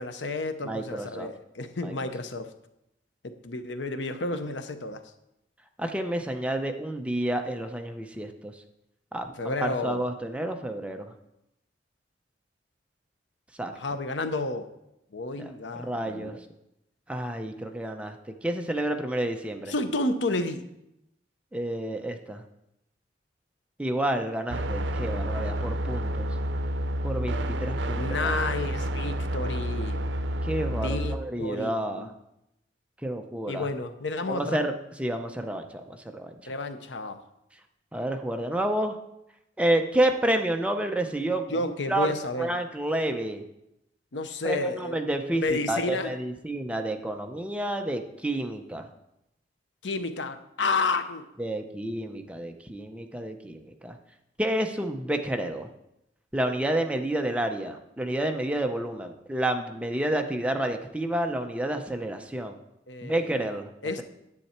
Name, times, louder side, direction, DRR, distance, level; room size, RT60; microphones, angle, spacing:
voice 1, 0.0-2.5 3.2-5.0 9.4-10.0 13.7-14.7 15.1-16.4 19.7-20.6 27.9-30.0 30.7-31.7 32.0-32.1 33.5-34.6 36.5-37.2 41.5-42.5 44.1-45.0 45.4-46.1 49.8-51.3 62.9-63.3 63.8-64.0, left 3 dB, 80° left, 9 dB, 0.8 m, -31 dB
voice 2, 0.6-1.3 1.8-1.9 5.8-8.5 9.1-11.1 13.6-13.7 15.4-16.4 17.1-18.2 18.4-19.7 21.5-22.4 23.8-26.3 27.0-28.3 30.4-32.1 33.0-33.7 34.3-34.7 35.0-35.8 36.1-36.5 37.9-39.0 39.6-41.5 41.9-42.1 42.4-43.4 44.4-48.9 51.4-54.0 54.4-55.7 56.3-62.6 63.0-63.7, right 1 dB, 5° right, 5 dB, 0.7 m, -29 dB
sound 1, 24.5-31.2, equal, 85° right, 0.6 m, -29 dB
9.9 x 8.3 x 4.4 m, 0.84 s
head